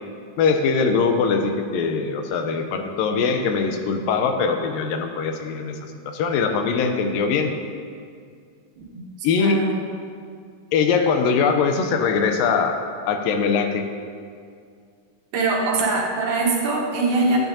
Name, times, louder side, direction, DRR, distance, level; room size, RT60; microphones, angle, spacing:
voice 1, 0.4-7.5 9.2-9.6 10.7-12.8 13.1-13.9, left 5 dB, 85° left, 5 dB, 2.4 m, -22 dB
voice 2, 8.8-9.8 15.3-17.4, right 3 dB, 65° right, -3 dB, 2.4 m, -23 dB
12.0 x 9.3 x 2.8 m, 2.2 s
omnidirectional pair, 3.9 m